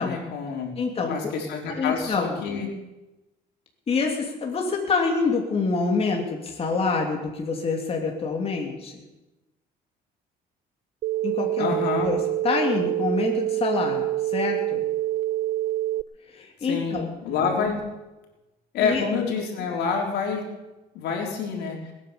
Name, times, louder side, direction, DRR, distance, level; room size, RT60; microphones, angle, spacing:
voice 1, 0.0-0.7 1.1-2.7 11.6-12.1 16.6-17.9 18.7-20.5 20.9-21.9, left 5 dB, 80° left, 1 dB, 4.0 m, -27 dB
voice 2, 0.8-1.4 1.7-2.4 3.9-9.0 11.2-12.2 12.4-14.9 16.3-17.0 18.8-19.0, left 4 dB, 35° left, 1 dB, 2.8 m, -26 dB
sound 1, 11.0-16.0, right 14 dB, 60° right, 0.6 m, -26 dB
21.0 x 9.7 x 6.9 m, 1.0 s
cardioid pair, 110°, 17 cm